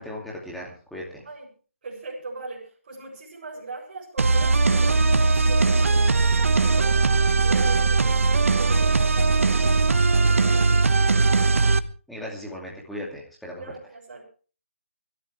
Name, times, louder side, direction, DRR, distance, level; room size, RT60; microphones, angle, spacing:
voice 1, 0.0-1.2 12.1-13.6, left 1 dB, ahead, -4 dB, 2.6 m, -37 dB
voice 2, 1.8-7.1 7.4-10.8 13.6-14.2, right 3 dB, 40° right, -4 dB, 7.7 m, -39 dB
sound 1, 4.2-11.8, right 3 dB, 70° right, 1.2 m, -20 dB
24.5 x 13.0 x 3.4 m, 0.38 s
hypercardioid pair, 170°, 7 cm